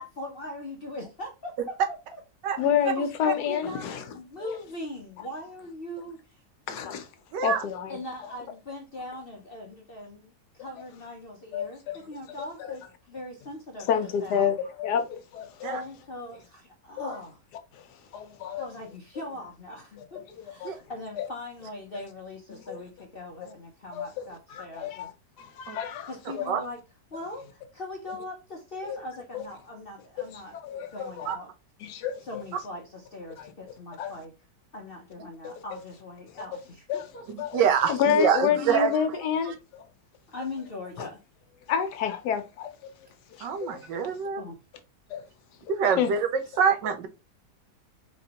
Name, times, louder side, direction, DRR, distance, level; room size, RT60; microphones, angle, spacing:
voice 1, 0.0-2.2 3.0-3.1 3.5-6.9 7.9-10.3 10.6-14.6 15.6-17.4 18.6-25.1 26.1-26.8 27.1-30.6 30.9-31.5 31.8-31.9 32.2-34.3 34.7-37.2 37.6-37.7 40.3-41.2 44.4-44.6, left 1 dB, 55° left, 0.6 m, -40 dB
voice 2, 2.6-4.0 6.7-7.1 7.4-8.0 11.5-11.7 13.9-15.8 17.0-17.1 17.7-17.8 18.1-18.6 20.4-20.7 21.2-21.3 22.5-22.7 23.9-24.0 24.5-25.1 25.4-26.5 28.9-29.0 29.3-29.4 30.2-30.3 30.6-31.3 31.8-32.4 33.4-33.5 34.0-34.1 35.4-35.5 36.9-37.1 37.4-37.6 37.9-39.8 41.0-41.1 41.7-42.9 43.4-43.8 45.1-45.2 46.0-46.1, left 8 dB, 75° left, 1.2 m, -29 dB
voice 3, 7.3-7.6 15.6-15.8 20.6-20.8 25.7-25.8 26.5-26.6 31.3-31.4 37.3-38.9 43.4-44.4 45.7-46.3 46.6-47.1, right 6 dB, 80° right, 1.3 m, -25 dB
4.2 x 3.0 x 2.8 m
omnidirectional pair, 1.9 m